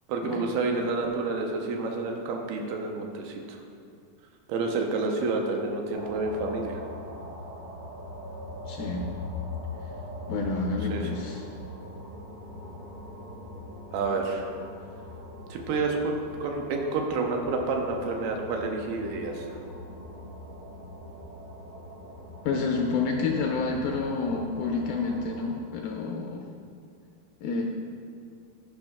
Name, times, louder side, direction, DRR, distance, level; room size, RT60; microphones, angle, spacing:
voice 1, 0.1-3.6 4.5-6.8 10.9-11.0 13.9-14.5 15.5-19.5, right 3 dB, 80° right, 2 dB, 2.6 m, -29 dB
sound 1, 5.9-25.6, left 2 dB, 65° right, 1.7 m, -41 dB
voice 2, 8.7-9.0 10.3-11.4 22.5-26.4 27.4-27.6, left 4 dB, 85° left, 1 dB, 2.1 m, -29 dB
10.5 x 5.5 x 3.5 m, 2.3 s
omnidirectional pair, 4.5 m